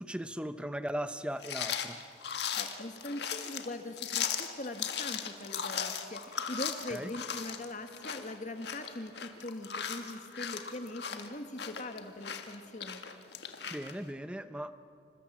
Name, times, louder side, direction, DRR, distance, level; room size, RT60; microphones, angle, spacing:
voice 1, 0.0-2.0 6.9-7.1 13.7-14.7, equal, 5° right, 10 dB, 0.8 m, -38 dB
sound 1, 1.4-13.9, left 7 dB, 60° left, 1.7 m, -38 dB
voice 2, 2.6-13.0, left 1 dB, 40° left, 7 dB, 1.6 m, -42 dB
28.0 x 26.0 x 7.4 m, 2.5 s
head